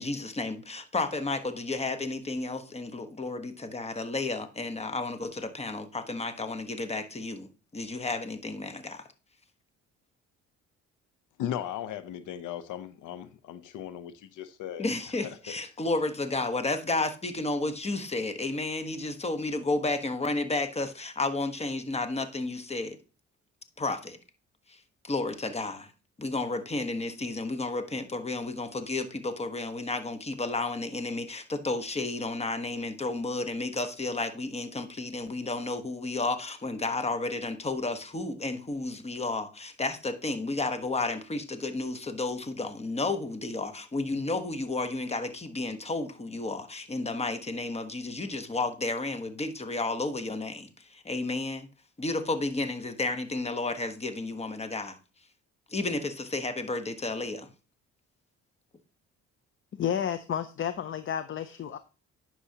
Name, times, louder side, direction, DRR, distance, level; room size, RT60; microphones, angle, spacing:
voice 1, 0.0-7.5 7.7-9.1 14.8-23.0 23.8-24.2 24.7-24.8 25.0-25.9 26.2-51.7 52.0-55.0 55.7-57.5, left 2 dB, 20° left, 1.1 m, -32 dB
voice 2, 11.4-14.9 15.5-15.6, left 10 dB, 85° left, 0.7 m, -37 dB
voice 3, 59.7-61.8, left 9 dB, 45° left, 0.6 m, -31 dB
9.9 x 6.2 x 2.8 m
cardioid pair, 90°, 30 cm